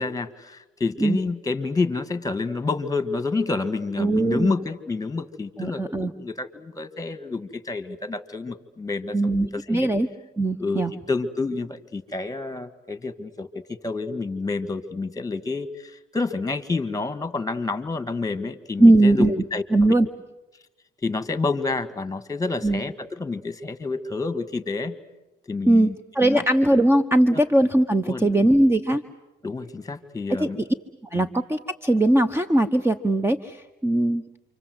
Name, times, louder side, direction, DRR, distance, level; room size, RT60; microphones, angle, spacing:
voice 1, 0.0-9.9 10.6-19.9 21.0-24.9 25.5-26.4 27.3-27.4 28.0-28.5 29.4-30.6 31.1-31.3, left 3 dB, 15° left, 13 dB, 1.7 m, -29 dB
voice 2, 4.0-4.5 5.6-6.1 9.1-10.1 10.4-10.9 18.8-19.4 19.7-20.1 22.6-22.8 25.7-25.9 26.1-29.0 30.4-30.5 31.1-34.2, right 1 dB, 10° right, 10 dB, 1.0 m, -20 dB
28.5 x 25.5 x 7.9 m, 1.0 s
cardioid pair, 90°, 20 cm